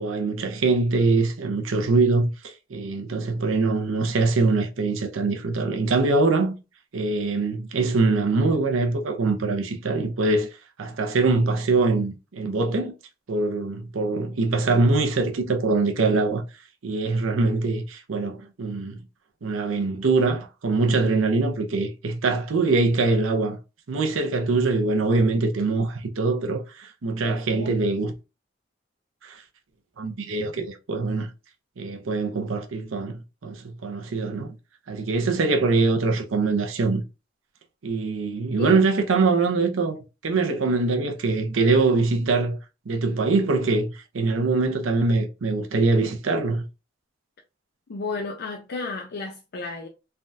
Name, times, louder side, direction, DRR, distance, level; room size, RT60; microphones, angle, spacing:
voice 1, 0.0-6.5 6.9-10.5 10.8-12.9 13.3-16.4 16.8-19.0 19.4-23.6 23.9-28.1 29.2-29.4 30.0-31.3 31.8-34.5 34.9-37.0 37.8-42.6 42.9-46.6, right 3 dB, 85° right, 0.6 m, -23 dB
voice 2, 27.2-27.7 38.6-38.8 47.9-49.9, left 3 dB, 55° left, 0.4 m, -33 dB
3.3 x 2.3 x 2.6 m
head